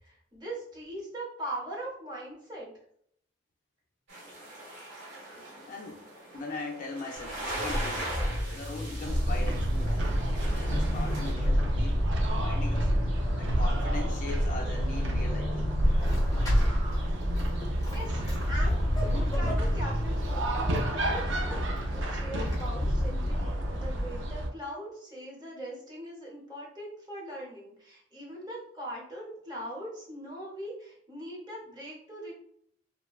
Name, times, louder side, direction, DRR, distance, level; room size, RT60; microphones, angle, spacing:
voice 1, 0.0-2.7 17.8-18.2 18.5-18.8 19.0-21.4 21.9-32.3, right 1 dB, 20° right, -5 dB, 0.9 m, -40 dB
sound 1, 4.1-11.3, right 1 dB, 85° right, 1.2 m, -40 dB
voice 2, 5.7-6.1 6.3-8.1 8.5-10.0 10.7-12.9 13.4-15.7, left 2 dB, 45° left, 0 dB, 0.4 m, -40 dB
Vehicle / Accelerating revving vroom / Squeak, 7.2-24.4, left 1 dB, 20° left, 0.8 m, -32 dB
sound 2, 9.0-24.5, right 1 dB, 70° right, 0.4 m, -29 dB
2.9 x 2.1 x 2.4 m, 0.68 s
head